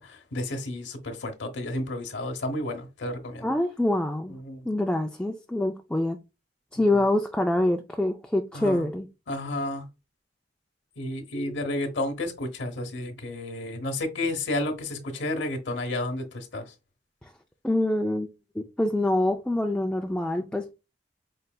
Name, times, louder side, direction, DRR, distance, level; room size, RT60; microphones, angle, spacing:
voice 1, 0.0-3.5 4.3-4.7 6.9-7.0 8.5-8.8 9.3-9.9 11.0-16.7, left 1 dB, 80° left, 0.9 m, -31 dB
voice 2, 3.4-4.3 4.6-6.2 6.7-9.1 17.6-18.3 18.6-20.7, left 1 dB, 5° left, 0.3 m, -25 dB
5.4 x 3.2 x 2.2 m
head